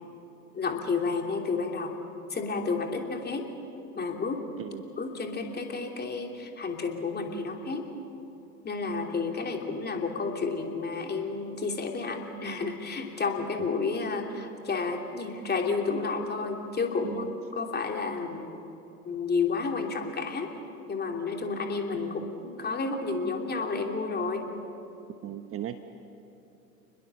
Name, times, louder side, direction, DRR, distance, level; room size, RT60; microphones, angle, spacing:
voice 1, 0.5-1.9 2.3-3.5 3.9-4.4 5.0-7.8 8.6-17.2 17.6-18.6 19.0-20.5 20.9-24.5, left 4 dB, 20° left, 3 dB, 3.0 m, -31 dB
voice 2, 21.9-22.3 25.2-25.8, right 12 dB, 30° right, 9 dB, 1.0 m, -37 dB
29.5 x 21.0 x 7.0 m, 2.8 s
figure-of-eight pair, 80°, 46 cm